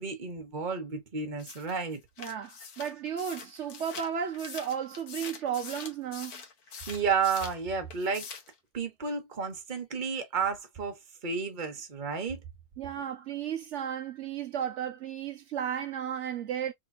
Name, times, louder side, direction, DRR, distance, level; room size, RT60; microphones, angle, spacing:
voice 1, 0.0-2.0 6.9-8.3 8.7-12.4, right 5 dB, 35° right, 0.8 m, -32 dB
sound 1, 1.4-7.6 7.9-8.5, left 6 dB, 55° left, 1.4 m, -44 dB
voice 2, 2.2-6.4 12.8-16.7, right 8 dB, 85° right, 0.6 m, -34 dB
3.7 x 3.3 x 2.6 m
omnidirectional pair, 2.1 m